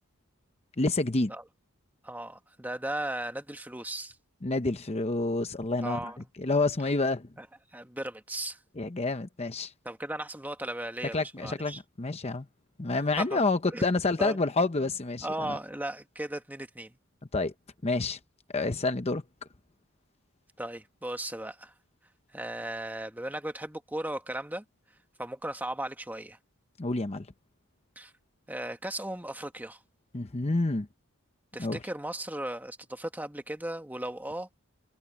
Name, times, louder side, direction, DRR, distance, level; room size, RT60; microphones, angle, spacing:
voice 1, 0.8-1.3 4.4-6.1 6.4-7.3 8.8-9.7 11.1-12.5 12.8-15.6 17.3-17.5 17.8-18.2 18.5-19.2 26.8-27.3 30.1-30.9 31.6-31.8, left 3 dB, 30° left, 0.8 m, -28 dB
voice 2, 2.0-4.1 5.8-6.2 7.4-7.5 7.7-8.6 9.8-11.8 13.2-13.4 13.7-13.9 14.2-14.4 15.2-17.0 20.6-21.7 22.3-24.6 25.2-26.4 27.9-28.1 28.5-29.8 31.5-34.5, right 1 dB, 10° right, 1.5 m, -36 dB
head